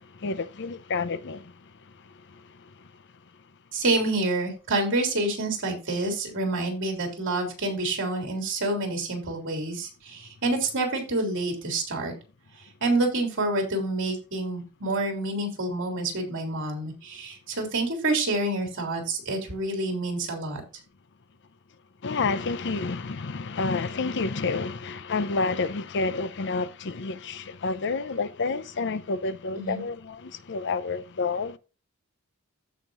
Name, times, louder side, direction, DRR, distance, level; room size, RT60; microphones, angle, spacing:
voice 1, 0.1-1.5 22.0-31.6, left 4 dB, 55° left, 0.7 m, -29 dB
voice 2, 3.7-12.1 12.8-20.6 29.6-29.8, right 2 dB, 60° right, 3.4 m, -28 dB
15.0 x 5.2 x 2.6 m
head